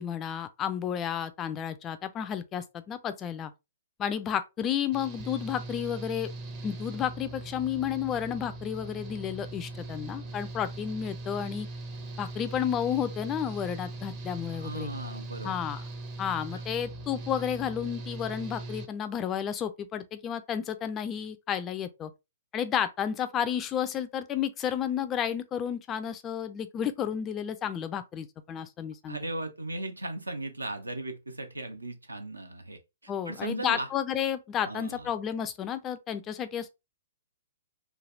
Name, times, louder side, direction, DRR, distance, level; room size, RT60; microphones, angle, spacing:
voice 1, 0.0-3.5 4.0-6.3 6.6-11.7 12.2-14.9 15.4-15.8 16.2-22.1 22.5-29.2 33.1-36.7, left 9 dB, 20° left, 0.3 m, -32 dB
Engine / Mechanical fan, 4.9-18.9, right 2 dB, 25° right, 0.6 m, -40 dB
voice 2, 14.5-15.7 16.5-16.6 29.1-33.9 34.6-35.1, right 2 dB, 80° right, 0.6 m, -37 dB
3.2 x 2.3 x 2.5 m
figure-of-eight pair, 120°, 0 cm